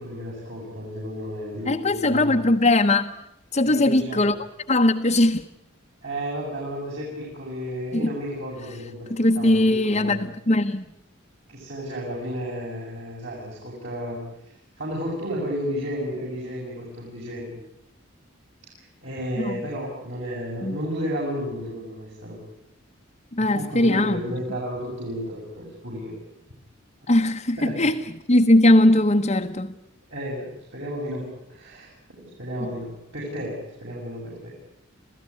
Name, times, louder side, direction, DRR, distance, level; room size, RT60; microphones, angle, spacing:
voice 1, 0.0-2.4 3.6-4.3 6.0-10.2 11.5-17.5 18.7-22.4 23.4-26.2 27.0-27.1 27.6-27.9 30.1-34.5, equal, 60° right, 7.2 m, -33 dB
voice 2, 1.7-3.1 3.5-4.4 4.7-5.4 7.9-8.1 9.1-10.9 19.4-19.6 20.6-20.8 23.3-24.2 27.1-28.0 28.3-29.7 32.6-32.7, left 1 dB, 35° left, 1.0 m, -20 dB
27.5 x 16.5 x 9.6 m
head